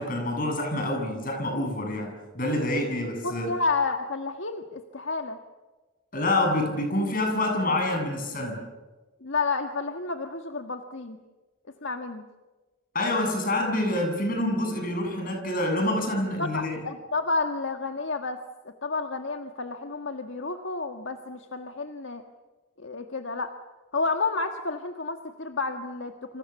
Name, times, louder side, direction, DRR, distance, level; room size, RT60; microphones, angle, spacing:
voice 1, 0.0-3.5 6.1-8.6 12.9-16.8, left 1 dB, 45° left, 3 dB, 7.6 m, -27 dB
voice 2, 3.2-5.4 9.2-11.2 11.8-12.2 16.4-18.4 18.6-22.2 22.8-23.5 23.9-26.4, left 3 dB, 70° left, 6 dB, 1.6 m, -30 dB
29.0 x 27.0 x 7.2 m, 1.3 s
head